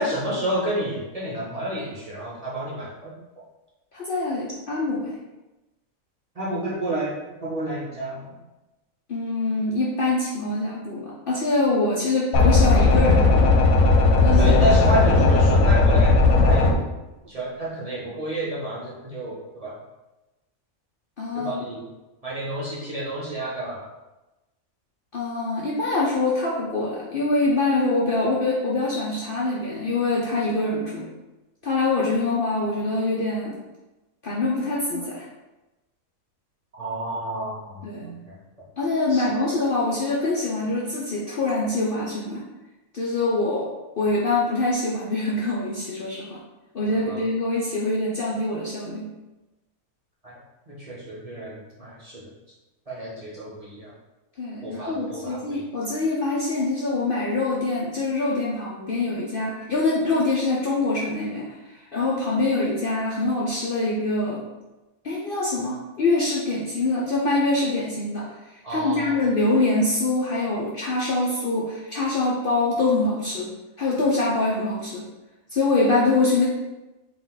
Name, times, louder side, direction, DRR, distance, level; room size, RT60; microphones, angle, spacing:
voice 1, 0.0-3.2 6.3-8.3 14.4-16.7 17.2-19.8 21.3-21.9 22.2-23.8 36.7-38.4 39.1-39.3 47.1-47.2 50.2-50.4 50.7-52.2 52.9-53.9 54.6-55.6 68.6-69.2, right 1 dB, 30° right, -6 dB, 0.9 m, -30 dB
voice 2, 3.9-5.1 9.1-13.5 14.2-14.5 21.2-21.7 25.1-31.1 31.6-33.6 34.2-35.2 37.8-38.2 38.8-42.4 42.9-43.7 44.0-46.4 46.7-49.1 54.4-64.5 65.0-73.5 73.8-75.1 75.5-76.5, left 2 dB, 50° left, -5 dB, 0.7 m, -24 dB
sound 1, 12.3-16.7, left 3 dB, 90° left, 1.2 m, -16 dB
4.6 x 2.4 x 3.9 m, 1.0 s
omnidirectional pair, 1.5 m